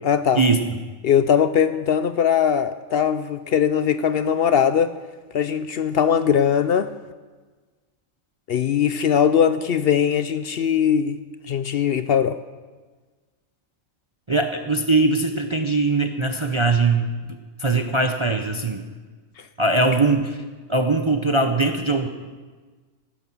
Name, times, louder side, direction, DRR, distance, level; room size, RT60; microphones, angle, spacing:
voice 1, 0.0-0.4 1.0-4.9 5.3-6.9 8.5-11.2 11.5-12.4, left 8 dB, 60° left, 12 dB, 0.6 m, -20 dB
voice 2, 14.3-18.8 19.6-20.4 20.7-22.1, right 3 dB, 30° right, 6 dB, 0.7 m, -21 dB
14.5 x 12.5 x 6.1 m, 1.4 s
omnidirectional pair, 1.4 m